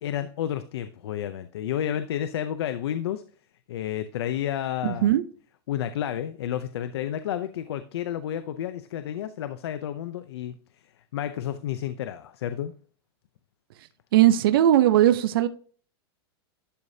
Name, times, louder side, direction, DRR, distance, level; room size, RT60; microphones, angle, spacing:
voice 1, 0.0-3.2 3.7-5.1 5.7-10.6 11.1-12.7, left 10 dB, 90° left, 11 dB, 0.6 m, -31 dB
voice 2, 4.8-5.2 14.1-15.5, right 12 dB, 60° right, 11 dB, 0.7 m, -19 dB
11.5 x 4.9 x 2.7 m, 0.43 s
supercardioid pair, 175°, 13 cm